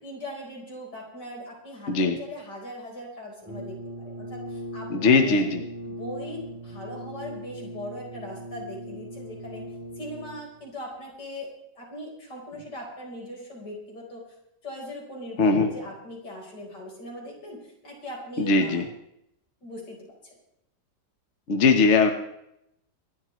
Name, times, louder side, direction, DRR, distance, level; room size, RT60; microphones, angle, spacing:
voice 1, 0.0-5.5 5.9-9.7 10.0-11.5 11.8-14.2 14.6-18.9 19.6-20.3, left 1 dB, 80° left, -1 dB, 5.1 m, -40 dB
Brass instrument, 3.4-10.6, equal, 10° right, 2.9 m, -39 dB
voice 2, 4.9-5.6 15.4-15.7 18.4-18.9 21.5-22.1, left 4 dB, 45° left, 5 dB, 1.4 m, -20 dB
25.5 x 12.0 x 3.2 m, 0.78 s
omnidirectional pair, 1.8 m